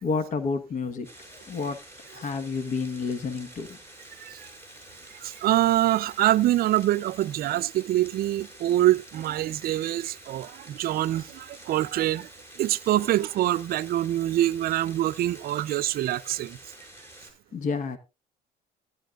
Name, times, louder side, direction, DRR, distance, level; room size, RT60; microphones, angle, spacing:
voice 1, 0.0-1.8 2.1-3.8 17.5-18.0, left 4 dB, 50° left, 1.3 m, -30 dB
sound 1, 1.0-17.3, right 1 dB, 15° left, 5.6 m, -48 dB
voice 2, 5.2-12.3 12.6-16.6, right 14 dB, 65° right, 0.6 m, -25 dB
16.0 x 11.0 x 2.4 m
cardioid pair, 110°, 17 cm